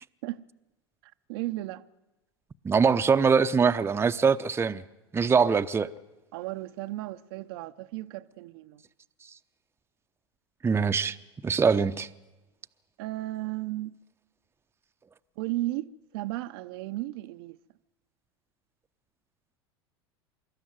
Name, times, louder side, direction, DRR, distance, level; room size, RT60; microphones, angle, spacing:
voice 1, 1.0-1.8 6.3-8.8 13.0-14.0 15.4-17.6, right 17 dB, 60° right, 0.7 m, -35 dB
voice 2, 2.6-4.8 5.1-5.9 10.6-11.2 11.4-12.1, right 5 dB, 15° right, 0.7 m, -23 dB
25.0 x 13.0 x 9.5 m
hypercardioid pair, 85°, 14 cm